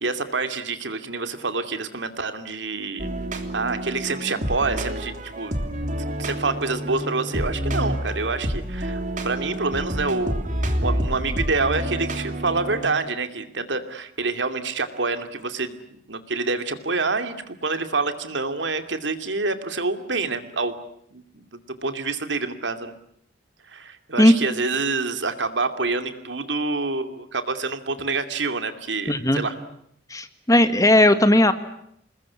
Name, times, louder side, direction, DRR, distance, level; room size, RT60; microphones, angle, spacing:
voice 1, 0.0-3.1 3.5-5.6 6.2-15.8 16.1-20.7 21.1-22.9 23.7-29.5, right 3 dB, 80° right, 8 dB, 2.6 m, -27 dB
sound 1, 3.0-12.9, equal, 45° right, 3.2 m, -28 dB
voice 2, 29.1-29.4 30.1-31.5, left 1 dB, 20° left, 10 dB, 1.7 m, -16 dB
27.5 x 21.0 x 9.7 m, 0.73 s
head